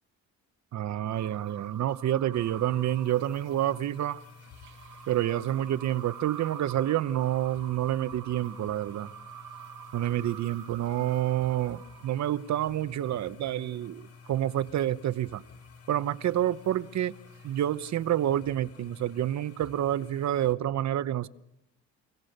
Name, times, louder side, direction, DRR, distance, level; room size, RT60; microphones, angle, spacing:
voice 1, 0.7-4.2 5.1-9.1 9.9-15.4 15.9-17.1 17.4-21.3, right 12 dB, 65° right, 0.9 m, -28 dB
sound 1, 1.0-12.8 16.1-18.4, right 10 dB, 80° right, 1.8 m, -47 dB
sound 2, 2.3-20.5, left 5 dB, 50° left, 2.3 m, -52 dB
28.5 x 17.0 x 6.6 m
cardioid pair, 90°, 30 cm